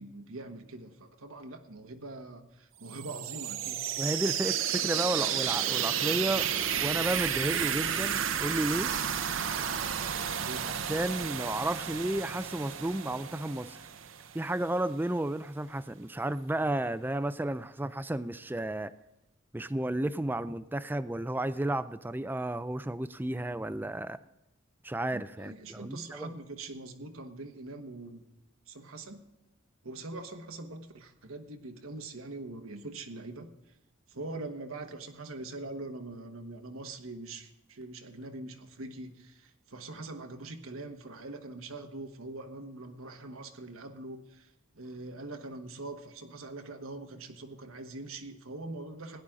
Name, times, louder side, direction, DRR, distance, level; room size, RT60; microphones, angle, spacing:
voice 1, 0.0-3.8 10.4-10.7 25.1-28.3 28.7-29.2 29.8-33.5 34.1-49.2, right 2 dB, 90° right, 5 dB, 1.3 m, -43 dB
sound 1, 2.9-14.6, right 9 dB, 70° right, 0.7 m, -32 dB
voice 2, 4.0-9.0 10.7-13.8 14.3-18.9 19.5-24.2 24.8-26.3, right 1 dB, 10° right, 14 dB, 0.4 m, -32 dB
16.5 x 10.5 x 3.7 m, 0.96 s
head